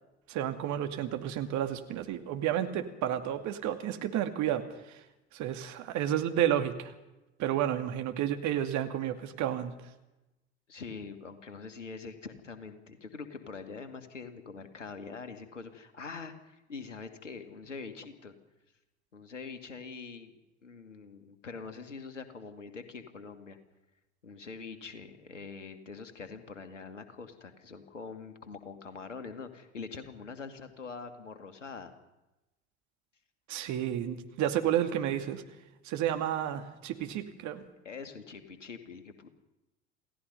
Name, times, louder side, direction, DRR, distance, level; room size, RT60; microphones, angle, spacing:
voice 1, 0.3-5.0 5.3-6.9 7.4-9.7 33.5-35.4 35.8-37.6, right 11 dB, 50° right, 7 dB, 2.4 m, -31 dB
voice 2, 10.7-18.4 19.1-20.3 20.6-23.6 24.2-31.9 37.8-39.3, left 5 dB, 90° left, 9 dB, 2.1 m, -44 dB
28.0 x 17.0 x 5.5 m, 0.98 s
figure-of-eight pair, 70°, 36 cm